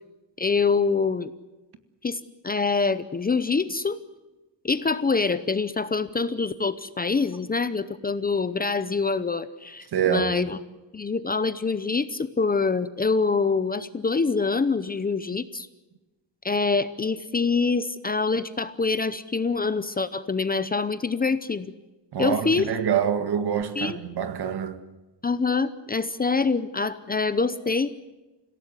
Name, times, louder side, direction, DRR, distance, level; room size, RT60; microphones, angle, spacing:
voice 1, 0.4-1.3 2.0-4.0 4.6-10.6 10.9-15.7 16.4-21.7 22.2-22.7 23.8-24.0 25.2-27.9, left 4 dB, 20° left, 0.7 m, -25 dB
voice 2, 9.9-10.3 22.1-24.8, right 8 dB, 60° right, 1.9 m, -26 dB
26.5 x 17.0 x 8.1 m
wide cardioid pair, 170°, 44 cm